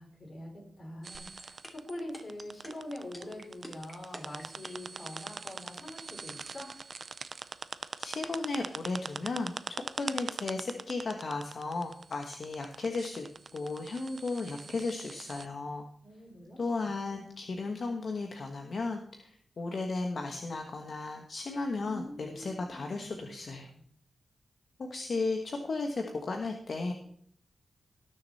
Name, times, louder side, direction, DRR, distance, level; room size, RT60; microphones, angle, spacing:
voice 1, 0.0-6.7 16.0-16.6 17.0-17.2 21.7-23.8, left 1 dB, 35° left, 0 dB, 4.7 m, -44 dB
sound 1, 1.0-15.5, right 5 dB, 55° right, 0.6 m, -42 dB
sound 2, 1.1-4.9, equal, 5° left, 2.7 m, -46 dB
voice 2, 8.0-13.3 13.5-15.8 16.6-23.7 24.8-26.9, left 3 dB, 60° left, 3 dB, 1.3 m, -35 dB
18.5 x 6.7 x 4.2 m, 0.66 s
wide cardioid pair, 100°, 0 cm